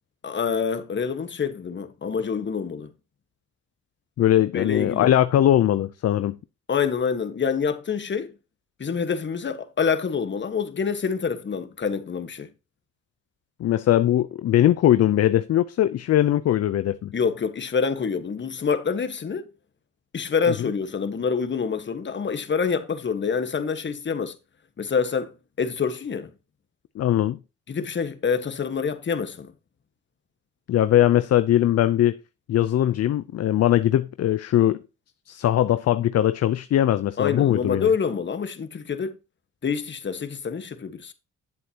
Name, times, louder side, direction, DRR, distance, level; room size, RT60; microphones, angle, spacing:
voice 1, 0.2-2.9 4.5-5.1 6.7-8.3 8.8-12.5 17.1-19.5 20.1-24.3 24.8-26.3 27.7-29.5 37.2-39.2 39.6-41.1, left 6 dB, 40° left, 1.4 m, -26 dB
voice 2, 4.2-6.4 13.6-17.1 20.5-20.6 27.0-27.4 30.7-32.2 32.5-34.8 35.3-37.9, left 12 dB, 55° left, 0.6 m, -20 dB
9.7 x 7.7 x 2.9 m
cardioid pair, 90°, 30 cm